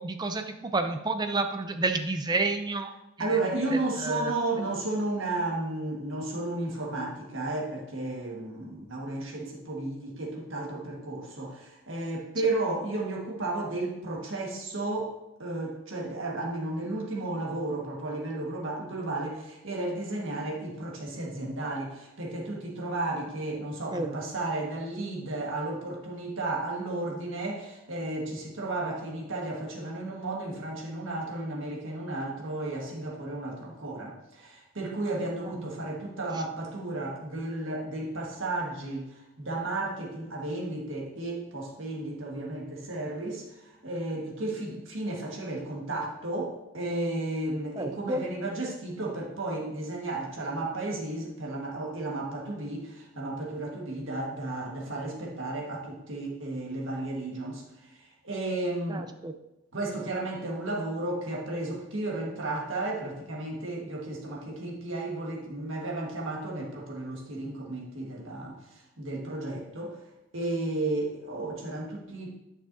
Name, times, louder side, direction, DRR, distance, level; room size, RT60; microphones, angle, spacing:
voice 1, 0.0-2.9 3.2-3.4 3.7-4.3 23.9-24.2 47.8-48.2 58.9-59.3, right 3 dB, 20° right, 7 dB, 0.4 m, -30 dB
voice 2, 3.2-15.1 15.4-59.1 59.7-70.0 70.3-72.3, right 2 dB, 65° right, -2 dB, 1.6 m, -33 dB
10.0 x 5.9 x 2.7 m, 0.94 s
head